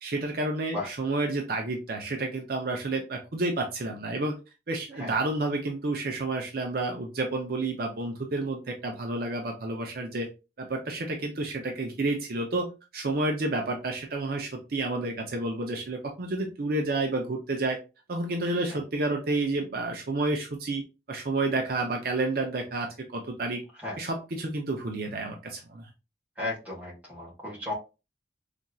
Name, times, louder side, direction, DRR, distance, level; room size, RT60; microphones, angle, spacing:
voice 1, 0.0-4.4 4.7-10.3 10.6-12.7 12.9-17.8 18.1-20.8 21.1-23.6 24.0-25.9, right 2 dB, 55° right, 2 dB, 0.5 m, -30 dB
voice 2, 26.4-27.7, left 2 dB, 10° right, -5 dB, 1.4 m, -34 dB
4.2 x 2.5 x 2.3 m, 0.29 s
head